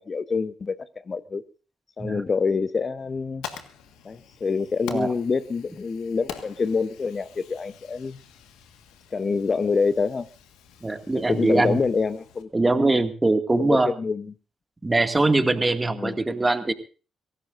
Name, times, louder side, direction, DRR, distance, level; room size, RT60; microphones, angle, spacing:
voice 1, 0.0-1.4 2.0-3.4 4.0-8.2 9.1-10.3 11.1-13.0 13.6-14.3 15.9-16.2, left 4 dB, 45° left, 0.9 m, -26 dB
Fire, 3.0-12.4, left 8 dB, 75° left, 1.6 m, -45 dB
voice 2, 10.8-11.8 12.5-13.9 14.8-16.7, right 2 dB, 25° right, 2.1 m, -22 dB
23.5 x 17.0 x 2.6 m
hypercardioid pair, 45°, 0 cm